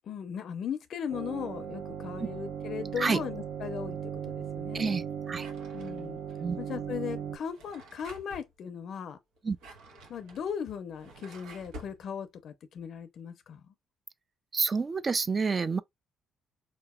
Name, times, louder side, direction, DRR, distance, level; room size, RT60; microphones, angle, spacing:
voice 1, 0.0-5.0 5.7-6.2 6.6-9.2 10.1-13.7, left 7 dB, 55° left, 0.5 m, -38 dB
sound 1, 1.1-7.4, right 8 dB, 60° right, 0.7 m, -37 dB
voice 2, 4.7-5.5 6.4-6.6 9.4-9.6 14.5-15.8, right 4 dB, 30° right, 0.3 m, -29 dB
Drawer open or close, 5.3-6.3 7.4-8.5 9.4-12.0, right 1 dB, 90° right, 1.0 m, -49 dB
4.1 x 2.9 x 2.2 m
cardioid pair, 125°, 0 cm